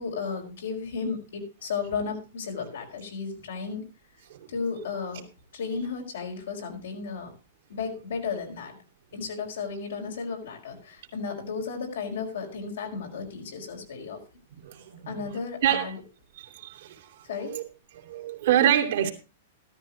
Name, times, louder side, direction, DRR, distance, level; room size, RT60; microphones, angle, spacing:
voice 1, 0.0-3.9 4.5-5.2 5.5-7.3 7.7-8.8 9.1-14.2 15.1-16.0 17.3-17.6, left 5 dB, 85° left, 4.8 m, -34 dB
voice 2, 16.4-17.0 17.5-17.6 18.0-19.1, right 11 dB, 70° right, 2.5 m, -25 dB
13.5 x 13.0 x 3.0 m
hypercardioid pair, 150°, 0 cm